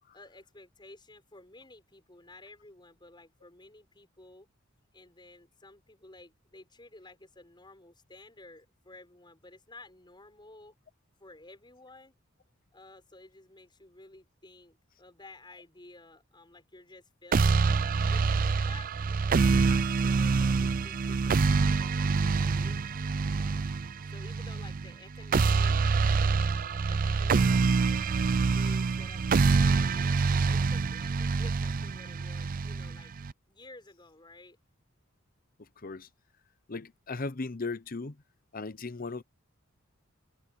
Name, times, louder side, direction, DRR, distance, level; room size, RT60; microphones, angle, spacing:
voice 1, 0.1-4.5 4.9-10.7 11.2-12.2 12.7-17.7 18.1-23.6 24.1-25.7 26.2-28.0 28.5-33.1 33.5-34.6, left 2 dB, 25° left, 6.2 m, -53 dB
sound 1, 17.3-33.3, right 4 dB, 45° right, 0.4 m, -26 dB
voice 2, 36.7-38.2 38.5-39.2, left 3 dB, 45° left, 0.9 m, -36 dB
head